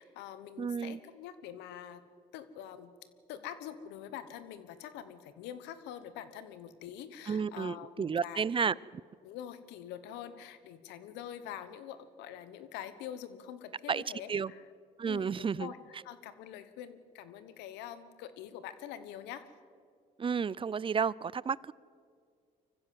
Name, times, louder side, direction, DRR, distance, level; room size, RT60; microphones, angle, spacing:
voice 1, 0.0-2.0 2.3-2.9 3.3-8.6 9.2-14.6 15.0-19.5, left 10 dB, 90° left, 13 dB, 1.2 m, -45 dB
voice 2, 0.6-1.0 7.3-8.7 13.9-14.0 14.3-14.5 15.0-15.7 20.2-21.7, right 6 dB, 30° right, 23 dB, 0.5 m, -31 dB
24.0 x 15.5 x 7.6 m, 2.1 s
supercardioid pair, 70°, 17 cm